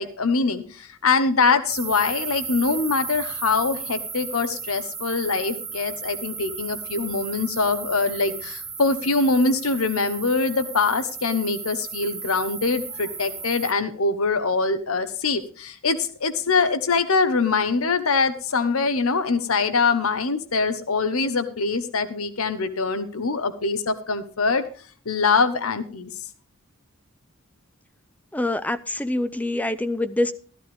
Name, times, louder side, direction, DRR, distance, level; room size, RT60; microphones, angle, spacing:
voice 1, 0.0-24.6 25.0-26.1, left 4 dB, 80° left, 12 dB, 1.1 m, -23 dB
sound 1, 1.7-13.7, right 5 dB, 10° right, 0.8 m, -35 dB
voice 2, 28.3-30.3, left 1 dB, 5° left, 14 dB, 0.5 m, -25 dB
14.5 x 12.5 x 3.5 m, 0.40 s
head